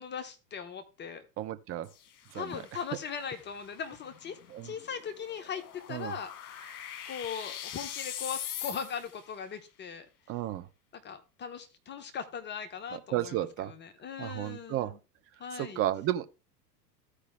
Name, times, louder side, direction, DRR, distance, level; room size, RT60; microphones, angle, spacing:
voice 1, 0.0-1.2 2.3-4.4 4.6-5.6 5.9-6.7 7.1-10.1 10.9-15.0 15.4-15.8, left 7 dB, 20° left, 0.8 m, -39 dB
voice 2, 1.4-1.9 2.3-2.4 4.5-4.7 5.9-6.1 10.3-10.6 12.9-13.7 14.2-14.9 15.5-16.3, right 13 dB, 30° right, 0.7 m, -32 dB
sound 1, 1.8-9.3, left 10 dB, 60° left, 1.2 m, -43 dB
14.5 x 4.9 x 3.3 m
figure-of-eight pair, 85°, 49 cm